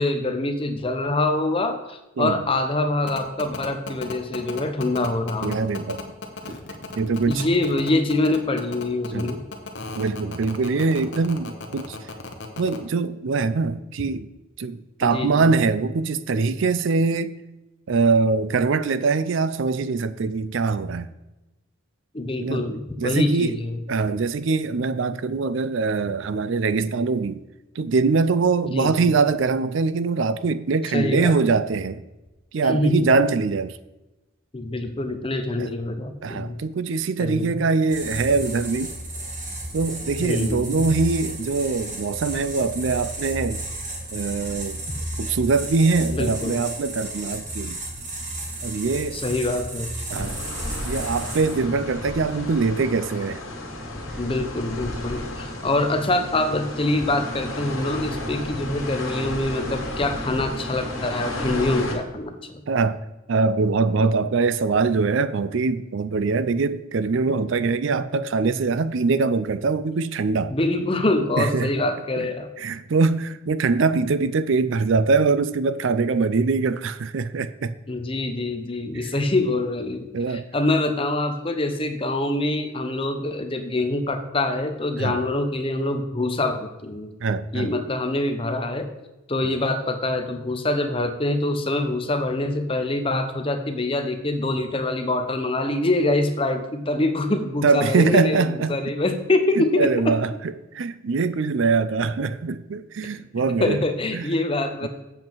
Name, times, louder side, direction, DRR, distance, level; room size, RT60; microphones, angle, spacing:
voice 1, 0.0-5.6 7.3-9.4 15.1-15.5 22.1-23.8 28.7-29.1 30.9-31.3 32.6-33.1 34.5-36.6 37.2-37.5 40.2-40.9 46.1-46.6 49.1-49.9 54.2-62.6 70.5-72.5 77.9-87.1 87.5-88.9 89.3-100.1 103.3-104.9, left 2 dB, 25° left, 0.8 m, -25 dB
sound 1, 3.1-12.8, left 3 dB, 55° left, 1.1 m, -35 dB
voice 2, 5.4-6.0 7.0-7.5 9.1-9.3 10.0-12.0 12.6-14.3 14.6-17.4 17.9-21.1 22.4-22.7 23.0-23.6 23.9-27.4 27.8-32.0 32.5-33.8 35.6-35.7 36.2-39.0 39.7-43.6 44.1-44.8 45.2-47.8 48.6-49.2 50.1-50.4 50.8-53.4 62.7-63.0 63.3-70.5 71.4-71.7 72.2-72.3 72.6-77.7 80.1-80.4 85.0-85.1 87.2-87.7 97.6-98.8 99.6-103.8 104.1-104.2 104.8-104.9, right 4 dB, 60° right, 0.4 m, -23 dB
sound 2, 37.9-51.5, right 1 dB, 35° right, 2.1 m, -33 dB
sound 3, 50.2-61.9, left 1 dB, 75° left, 2.3 m, -32 dB
7.5 x 7.5 x 4.6 m
head